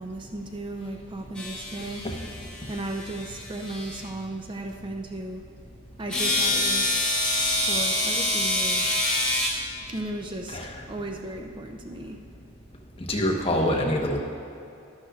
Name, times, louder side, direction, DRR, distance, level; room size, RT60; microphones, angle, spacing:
voice 1, 0.0-2.0 2.7-5.4 6.0-7.0 7.7-9.0 9.9-10.6 10.9-12.2, right 2 dB, 25° right, 3 dB, 0.5 m, -35 dB
sound 1, 1.3-4.0 6.1-9.5, left 1 dB, 5° left, 2.4 m, -26 dB
voice 2, 13.1-14.2, left 1 dB, 30° left, 0 dB, 1.0 m, -25 dB
12.0 x 11.5 x 2.4 m, 2.7 s
head